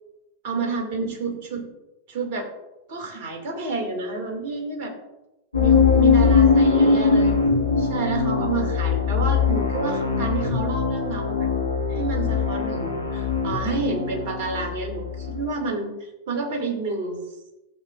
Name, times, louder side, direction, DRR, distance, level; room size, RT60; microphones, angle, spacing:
voice 1, 0.4-1.7 2.1-2.5 2.9-4.9 5.6-7.4 7.8-11.5 11.9-17.2, right 4 dB, 45° right, 2 dB, 2.3 m, -29 dB
sound 1, 5.5-15.5, left 5 dB, 85° left, 1.3 m, -21 dB
15.5 x 7.2 x 2.5 m, 0.96 s
figure-of-eight pair, 90°, 0 cm